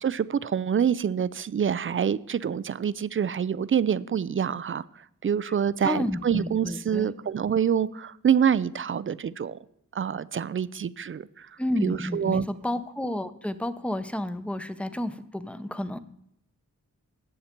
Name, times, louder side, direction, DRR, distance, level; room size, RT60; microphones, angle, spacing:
voice 1, 0.0-4.8 5.2-9.6 9.9-11.5 11.8-12.5, right 8 dB, 40° right, 0.4 m, -26 dB
voice 2, 5.8-7.1 11.6-16.0, left 1 dB, 5° left, 0.7 m, -31 dB
14.0 x 9.0 x 4.4 m
wide cardioid pair, 130°, 32 cm